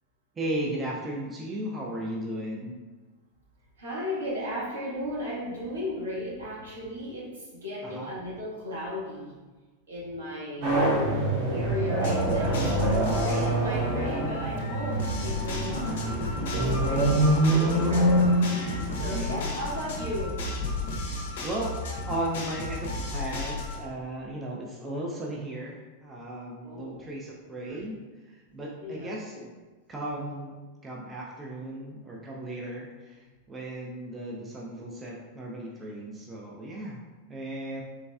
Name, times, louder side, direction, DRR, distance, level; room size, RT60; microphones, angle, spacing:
voice 1, 0.3-2.8 7.8-8.1 15.7-16.1 18.9-19.4 21.4-21.8 22.1-27.9 28.3-29.5 29.9-37.0 37.3-37.8, right 1 dB, 15° right, -3 dB, 0.4 m, -36 dB
voice 2, 3.8-9.4 9.9-10.8 11.5-20.4 26.6-27.1 27.7-27.9 28.8-29.2, equal, 70° right, -7 dB, 1.1 m, -36 dB
sound 1, 10.6-20.0, right 1 dB, 45° right, 0.9 m, -26 dB
sound 2, 12.0-23.8, left 2 dB, 55° left, 0.5 m, -33 dB
3.4 x 3.0 x 2.3 m, 1.3 s
figure-of-eight pair, 90°, 0 cm